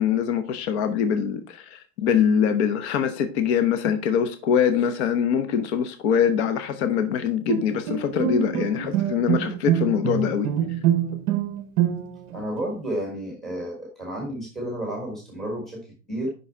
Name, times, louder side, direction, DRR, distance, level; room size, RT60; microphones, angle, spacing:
voice 1, 0.0-10.5, left 8 dB, 55° left, 9 dB, 0.8 m, -23 dB
Bowed string instrument, 7.5-12.3, right 10 dB, 30° right, 0.7 m, -25 dB
voice 2, 12.3-16.3, right 1 dB, ahead, -1 dB, 1.4 m, -31 dB
6.1 x 5.6 x 4.3 m, 0.35 s
supercardioid pair, 180°, 40 cm